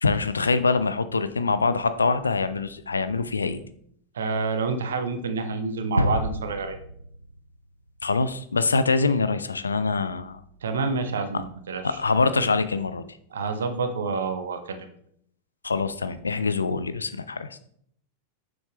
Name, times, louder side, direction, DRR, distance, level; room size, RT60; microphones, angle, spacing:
voice 1, 0.0-3.6 8.0-10.4 11.8-13.0 15.6-17.6, left 4 dB, 75° left, 12 dB, 0.5 m, -24 dB
voice 2, 4.1-6.8 10.6-12.0 13.3-14.9, right 4 dB, 65° right, 8 dB, 1.0 m, -28 dB
sound 1, 6.0-8.0, equal, 85° right, 0.5 m, -28 dB
7.1 x 6.3 x 3.3 m, 0.68 s
figure-of-eight pair, 90°, 0 cm